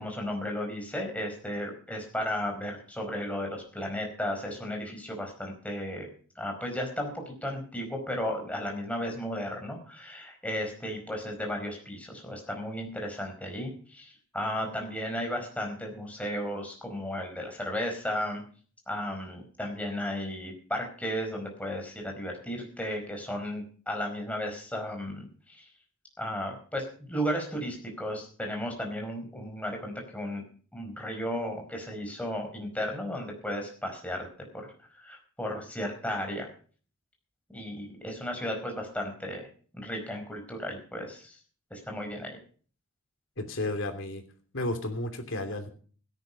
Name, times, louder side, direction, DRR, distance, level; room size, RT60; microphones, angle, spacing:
voice 1, 0.0-6.1 6.4-18.4 18.9-25.7 26.2-30.4 30.7-34.3 34.9-36.5 37.5-39.5 39.7-41.4 41.7-42.4, equal, 5° left, 2 dB, 4.8 m, -34 dB
voice 2, 43.4-44.2 44.5-45.7, left 1 dB, 65° left, 6 dB, 3.0 m, -32 dB
16.5 x 10.5 x 5.3 m, 0.43 s
head